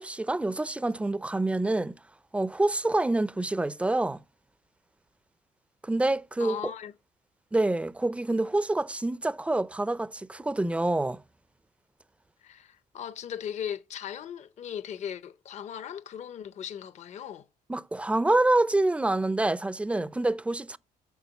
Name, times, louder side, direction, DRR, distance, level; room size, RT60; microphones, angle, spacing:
voice 1, 0.0-2.0 2.3-4.2 5.8-6.6 7.5-11.2 17.7-20.8, right 2 dB, 5° right, 0.4 m, -26 dB
voice 2, 6.4-6.9 12.4-17.5, left 9 dB, 45° left, 0.6 m, -38 dB
6.9 x 6.0 x 7.0 m
cardioid pair, 110°, 17 cm